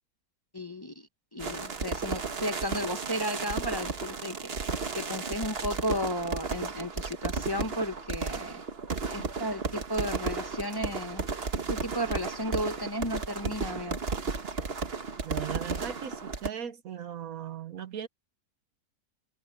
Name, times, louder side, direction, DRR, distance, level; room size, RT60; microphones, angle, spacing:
voice 1, 0.5-4.5 4.9-8.6 9.1-11.2 11.7-14.0, equal, 15° left, 1.0 m, -34 dB
sound 1, 1.4-16.5, right 4 dB, 40° right, 1.5 m, -34 dB
voice 2, 15.2-18.1, right 9 dB, 65° right, 1.4 m, -38 dB
omnidirectional pair, 1.6 m